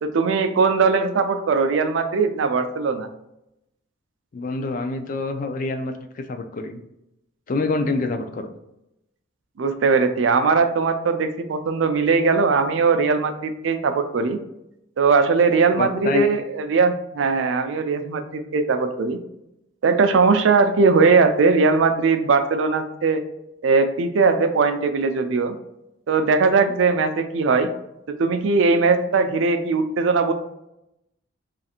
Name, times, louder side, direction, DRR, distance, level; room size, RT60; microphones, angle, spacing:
voice 1, 0.0-3.1 9.6-14.4 15.0-19.2 19.8-23.2 23.6-25.6 26.1-27.7 28.2-30.3, right 4 dB, 65° right, 8 dB, 0.4 m, -20 dB
voice 2, 4.3-6.8 7.5-8.5 15.8-16.3, left 3 dB, 40° left, 7 dB, 0.3 m, -26 dB
3.2 x 2.5 x 4.2 m, 0.85 s
head